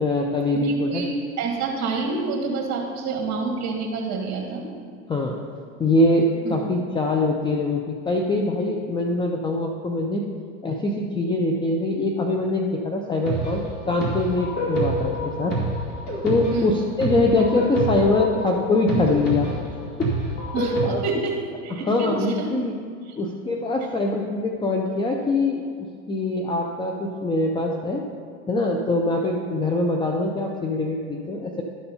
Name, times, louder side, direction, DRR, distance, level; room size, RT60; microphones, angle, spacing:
voice 1, 0.0-1.0 5.1-5.4 5.8-10.2 10.6-13.6 13.9-15.6 16.2-19.5 20.0-20.1 20.8-21.0 21.9-22.7 23.2-28.0 28.5-31.6, left 2 dB, 10° left, 1 dB, 0.4 m, -23 dB
voice 2, 0.5-4.6 6.4-6.5 16.5-16.8 20.5-20.8 21.0-22.1 22.4-22.5 23.1-23.2, right 4 dB, 40° right, 1 dB, 2.0 m, -28 dB
sound 1, 13.2-20.9, right 1 dB, 40° left, 2.4 m, -27 dB
12.0 x 4.3 x 5.5 m, 2.2 s
hypercardioid pair, 110°, 43 cm